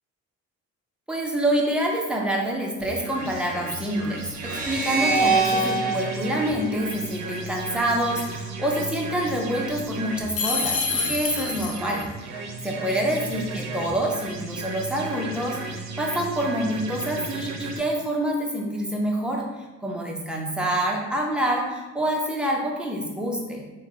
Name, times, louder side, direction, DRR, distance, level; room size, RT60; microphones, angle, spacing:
voice 1, 1.1-23.6, right 1 dB, 5° right, -1 dB, 0.6 m, -27 dB
sound 1, 2.8-17.8, right 3 dB, 65° right, 0.5 m, -35 dB
sound 2, 4.4-7.7, right 3 dB, 30° right, 1.5 m, -26 dB
sound 3, 10.3-12.0, left 4 dB, 50° left, 0.6 m, -27 dB
2.9 x 2.1 x 3.6 m, 1.1 s
cardioid pair, 90°, 30 cm